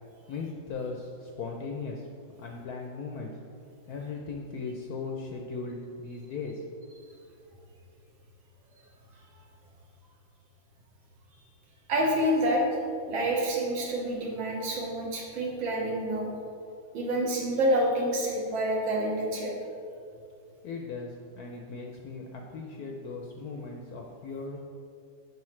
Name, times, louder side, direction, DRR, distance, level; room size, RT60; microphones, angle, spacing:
voice 1, 0.3-2.1 2.4-3.4 3.9-6.6 20.1-20.2 20.6-24.6, left 4 dB, 70° left, 1 dB, 0.9 m, -38 dB
voice 2, 11.9-12.6 13.1-16.3 16.9-19.5, right 1 dB, 75° right, -2 dB, 1.9 m, -27 dB
9.5 x 5.3 x 3.2 m, 2.4 s
omnidirectional pair, 2.2 m